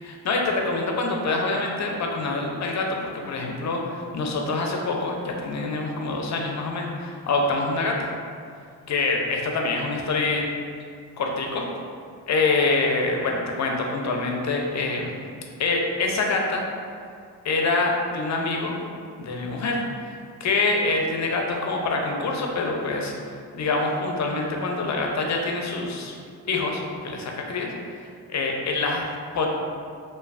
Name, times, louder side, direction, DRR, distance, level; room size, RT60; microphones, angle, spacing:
voice 1, 0.0-8.1 8.9-10.4 11.2-11.6 12.3-15.1 15.6-16.6 17.4-18.8 19.2-20.1 20.4-23.1 23.5-26.2 26.5-29.5, left 3 dB, 40° left, 1 dB, 0.5 m, -25 dB
3.1 x 2.1 x 2.4 m, 2.2 s
supercardioid pair, 50°, 45 cm